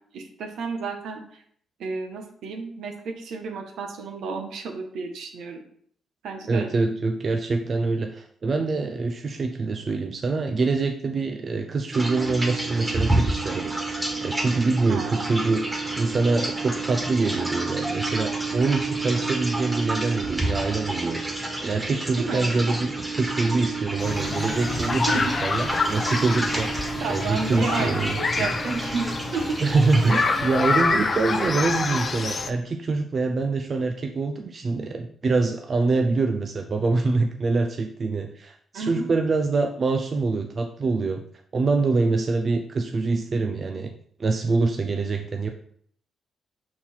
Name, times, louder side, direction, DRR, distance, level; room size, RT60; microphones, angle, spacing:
voice 1, 0.1-1.4 1.8-5.6 6.2-7.0 14.9-15.3 22.1-22.5 24.9-25.2 27.0-29.6 38.7-39.0, right 4 dB, 75° right, 4 dB, 1.1 m, -32 dB
voice 2, 6.5-28.5 29.6-41.2 41.5-43.9 44.2-45.5, right 3 dB, 50° right, 5 dB, 0.6 m, -25 dB
sound 1, 11.9-30.1, right 2 dB, 15° right, 1.7 m, -29 dB
sound 2, 24.0-32.5, left 3 dB, 40° left, 0.7 m, -27 dB
5.6 x 4.3 x 4.3 m, 0.63 s
supercardioid pair, 60°, 0 cm